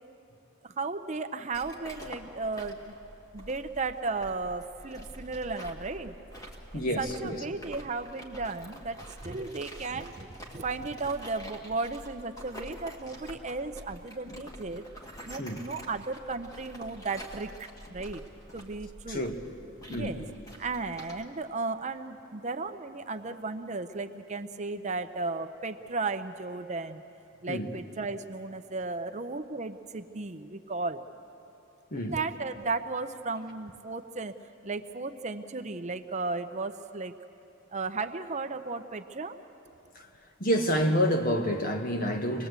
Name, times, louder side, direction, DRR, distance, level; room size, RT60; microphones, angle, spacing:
voice 1, 0.6-2.9 3.3-6.1 6.7-14.9 15.2-18.2 18.5-19.3 19.9-20.2 20.6-27.0 27.4-31.0 32.0-34.4 34.6-37.1 37.7-39.4, right 3 dB, 35° right, 0.7 m, -35 dB
sound 1, 1.5-21.2, equal, 15° left, 2.0 m, -47 dB
voice 2, 6.7-7.4 14.3-14.4 15.4-15.6 19.1-19.4 19.9-20.2 27.5-27.7 31.9-32.2 39.9-40.1 40.4-42.5, equal, 45° left, 1.6 m, -28 dB
25.0 x 20.0 x 8.1 m
head